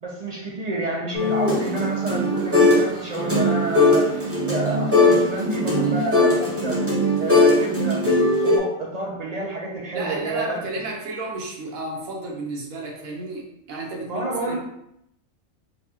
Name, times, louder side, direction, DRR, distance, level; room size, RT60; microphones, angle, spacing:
voice 1, 0.0-4.1 4.5-6.8 7.2-8.0 8.4-10.7 14.1-14.6, right 2 dB, 65° right, -2 dB, 0.4 m, -29 dB
sound 1, 1.1-2.9 3.1-8.6, left 2 dB, 15° right, 0.7 m, -19 dB
voice 2, 9.9-14.6, right 2 dB, 90° right, -2 dB, 1.3 m, -32 dB
4.6 x 2.2 x 2.8 m, 0.76 s
omnidirectional pair, 1.4 m